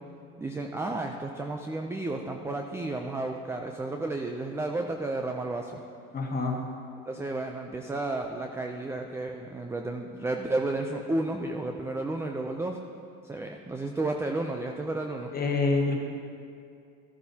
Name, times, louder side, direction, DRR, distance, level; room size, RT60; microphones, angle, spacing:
voice 1, 0.4-5.8 7.1-12.8 13.2-15.3, right 2 dB, 5° right, 3 dB, 0.4 m, -32 dB
voice 2, 6.1-6.6 15.3-16.0, left 3 dB, 25° left, 0 dB, 1.5 m, -26 dB
13.5 x 9.8 x 2.8 m, 2.4 s
supercardioid pair, 95°, 39 cm